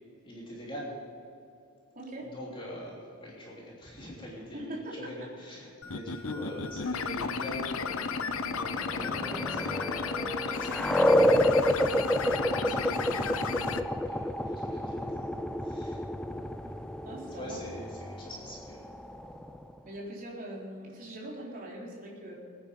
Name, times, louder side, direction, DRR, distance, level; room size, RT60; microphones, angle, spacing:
voice 1, 0.2-1.0 2.3-13.5 14.1-16.0 17.1-18.9, equal, 25° left, -5 dB, 3.2 m, -43 dB
voice 2, 2.0-2.3 4.5-5.1 12.4-12.6 16.6-16.8 17.0-17.6 19.8-22.3, right 1 dB, 40° right, -4 dB, 3.9 m, -41 dB
sound 1, 5.8-13.8, left 5 dB, 65° left, 0.7 m, -34 dB
sound 2, 8.3-19.7, left 1 dB, 5° left, 0.4 m, -29 dB
21.5 x 9.8 x 5.3 m, 2.5 s
head